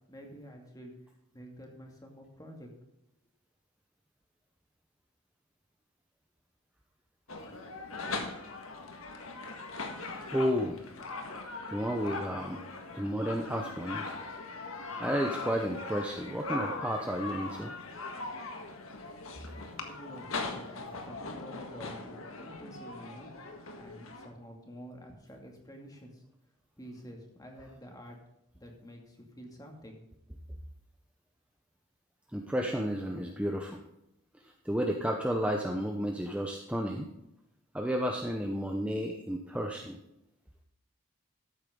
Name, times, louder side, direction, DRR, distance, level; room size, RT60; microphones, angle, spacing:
voice 1, 0.1-0.9 1.3-2.7 19.6-23.3 23.8-26.2 26.8-28.2 28.5-30.0, equal, 20° left, 1 dB, 2.2 m, -49 dB
sound 1, 7.3-24.3, left 3 dB, 85° left, 1.7 m, -40 dB
voice 2, 10.1-10.8 11.7-12.6 12.9-14.1 15.0-17.7 32.3-33.8 34.6-37.1 37.7-40.0, equal, 5° right, 2 dB, 0.8 m, -32 dB
13.5 x 8.7 x 3.8 m, 0.84 s
head